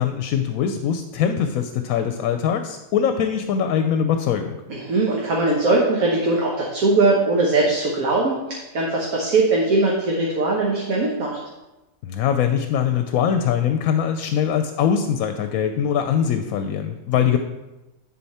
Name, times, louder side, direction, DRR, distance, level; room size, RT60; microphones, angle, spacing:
voice 1, 0.0-4.6 12.0-17.4, left 8 dB, 80° left, 7 dB, 1.0 m, -22 dB
voice 2, 4.7-11.4, right 2 dB, 80° right, -3 dB, 1.6 m, -20 dB
10.5 x 4.4 x 4.2 m, 1.0 s
omnidirectional pair, 1.5 m